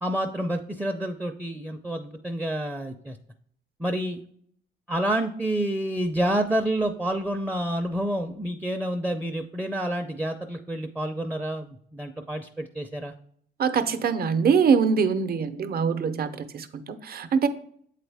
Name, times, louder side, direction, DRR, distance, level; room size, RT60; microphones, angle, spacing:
voice 1, 0.0-3.2 3.8-4.2 4.9-13.1, right 1 dB, 10° right, 5 dB, 0.5 m, -28 dB
voice 2, 13.6-17.5, right 6 dB, 50° right, 10 dB, 0.7 m, -23 dB
7.8 x 4.1 x 3.4 m, 0.64 s
cardioid pair, 90°, 20 cm